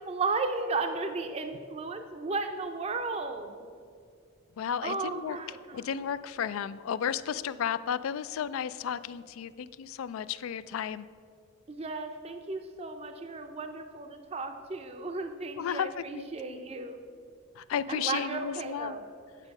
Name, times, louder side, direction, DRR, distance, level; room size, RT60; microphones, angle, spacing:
voice 1, 0.1-3.7 4.8-5.9 11.7-17.0 17.9-19.0, right 3 dB, 30° right, 6 dB, 0.5 m, -34 dB
voice 2, 4.6-5.4 5.7-11.1 15.6-15.9 16.1-16.7 17.6-18.9, left 8 dB, 85° left, 16 dB, 0.3 m, -33 dB
9.2 x 6.3 x 5.3 m, 2.3 s
head